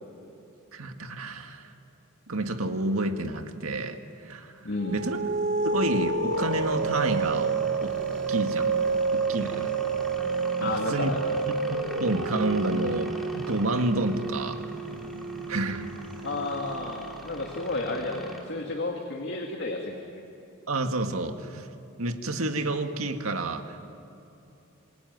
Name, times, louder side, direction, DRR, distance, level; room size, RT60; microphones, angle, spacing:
voice 1, 0.7-1.7 2.3-5.3 5.6-8.0 8.3-8.8 9.1-9.8 10.6-11.1 11.7-14.6 15.5-15.9 20.7-21.7 22.0-24.0, right 2 dB, 90° right, 6 dB, 1.9 m, -30 dB
voice 2, 4.6-5.0 10.6-11.2 16.2-20.0, left 2 dB, 55° left, 2 dB, 2.3 m, -32 dB
sound 1, 4.8-17.6, right 4 dB, 60° right, 1.2 m, -30 dB
sound 2, 6.3-18.4, right 1 dB, ahead, 3.2 m, -41 dB
27.0 x 22.5 x 9.5 m, 2.9 s
head